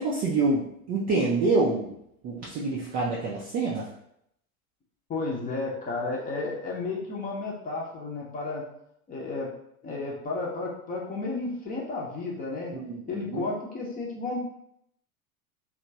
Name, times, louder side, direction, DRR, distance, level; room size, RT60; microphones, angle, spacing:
voice 1, 0.0-1.9 2.2-3.9 12.7-13.5, right 3 dB, 20° right, -5 dB, 0.4 m, -27 dB
voice 2, 5.1-8.7 9.1-9.5 9.8-12.7 13.1-14.5, left 3 dB, 20° left, -3 dB, 0.7 m, -32 dB
2.9 x 2.3 x 2.7 m, 0.73 s
figure-of-eight pair, 85°, 43 cm